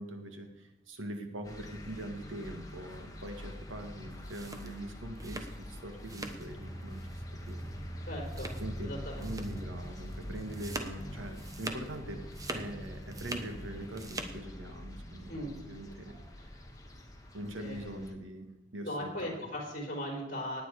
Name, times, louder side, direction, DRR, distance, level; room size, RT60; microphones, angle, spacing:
voice 1, 0.0-7.6 8.6-12.2 12.5-16.5 17.3-18.5 18.7-19.4, right 1 dB, 85° right, 5 dB, 1.9 m, -43 dB
sound 1, 1.4-18.1, equal, 20° left, 1.7 m, -44 dB
sound 2, 4.1-6.5 6.8-7.2 7.5-7.6 8.3-8.8 9.2-9.6 10.0-12.0 12.2-13.5 13.8-14.4, right 2 dB, 20° right, 1.2 m, -43 dB
voice 2, 8.0-8.5 8.8-9.3 15.3-15.6 17.6-17.9 18.8-20.6, equal, 45° left, 0 dB, 4.4 m, -38 dB
18.5 x 9.3 x 5.0 m, 1.1 s
head